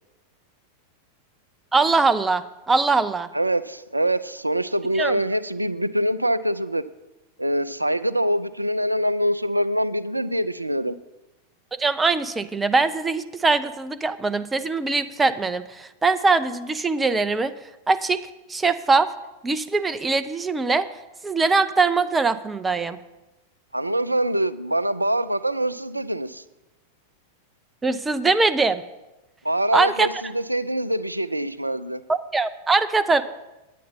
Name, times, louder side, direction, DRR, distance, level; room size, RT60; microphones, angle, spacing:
voice 1, 1.7-3.3 4.9-5.2 11.7-17.5 17.9-18.2 18.5-19.1 19.4-20.9 21.2-23.0 27.8-28.8 29.7-30.1 32.1-33.2, right 3 dB, 15° right, 12 dB, 0.5 m, -22 dB
voice 2, 3.3-6.8 7.4-11.0 23.7-26.4 29.4-32.0, right 1 dB, 85° right, 15 dB, 0.4 m, -24 dB
9.5 x 9.2 x 5.5 m, 1.0 s
figure-of-eight pair, 90°, 0 cm